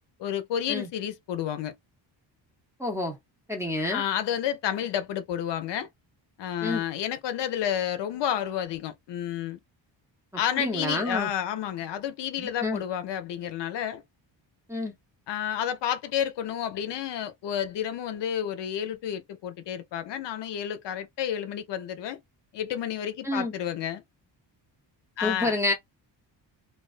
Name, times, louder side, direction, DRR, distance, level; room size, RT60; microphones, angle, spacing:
voice 1, 0.2-1.7 3.9-5.9 6.4-9.6 10.4-14.0 15.3-22.2 22.5-24.0 25.2-25.5, left 10 dB, 65° left, 0.6 m, -30 dB
voice 2, 2.8-3.2 3.5-4.0 6.6-6.8 10.6-11.3 12.4-12.8 14.7-14.9 23.2-23.5 25.2-25.7, left 2 dB, 5° right, 0.6 m, -28 dB
2.3 x 2.2 x 2.4 m
cardioid pair, 135°, 46 cm